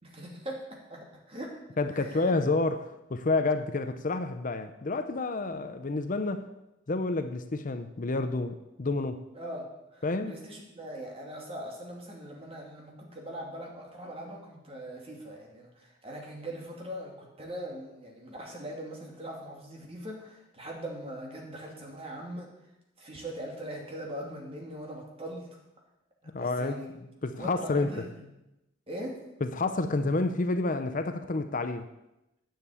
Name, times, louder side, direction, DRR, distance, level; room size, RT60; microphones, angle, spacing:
voice 1, 0.0-1.5 1.9-2.3 9.3-22.5 23.0-25.5 26.2-26.9 27.3-28.2 28.9-29.2, right 1 dB, 30° right, 0 dB, 2.6 m, -41 dB
voice 2, 1.8-6.5 6.9-9.2 10.0-10.3 26.3-27.9 29.4-31.9, left 3 dB, 45° left, 9 dB, 0.6 m, -29 dB
9.6 x 7.6 x 8.4 m, 0.93 s
head